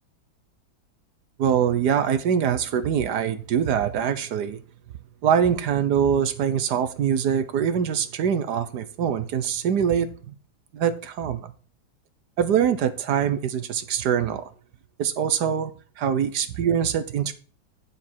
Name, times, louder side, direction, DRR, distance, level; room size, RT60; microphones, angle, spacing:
voice 1, 1.4-4.6 5.2-10.1 10.7-11.5 12.4-14.5 15.0-15.7 16.0-17.3, right 8 dB, 65° right, 1.3 m, -23 dB
9.8 x 7.3 x 4.5 m
omnidirectional pair, 2.2 m